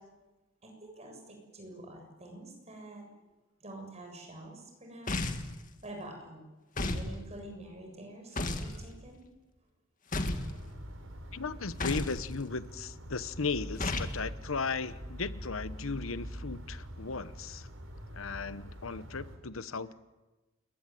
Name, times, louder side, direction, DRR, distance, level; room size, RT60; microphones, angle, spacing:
voice 1, 0.6-3.1 3.6-5.2 5.8-6.4 6.9-9.3, right 1 dB, 35° right, 3 dB, 7.2 m, -47 dB
sound 1, 5.1-5.6 6.8-7.1 8.4-8.7 10.1-10.5 11.8-12.2 13.8-14.2, left 2 dB, 40° left, 2.2 m, -32 dB
sound 2, 10.2-19.4, equal, 75° right, 5.1 m, -44 dB
voice 2, 11.3-17.7 18.1-19.9, left 4 dB, 85° left, 14 dB, 1.0 m, -36 dB
28.5 x 22.0 x 9.2 m, 1.1 s
head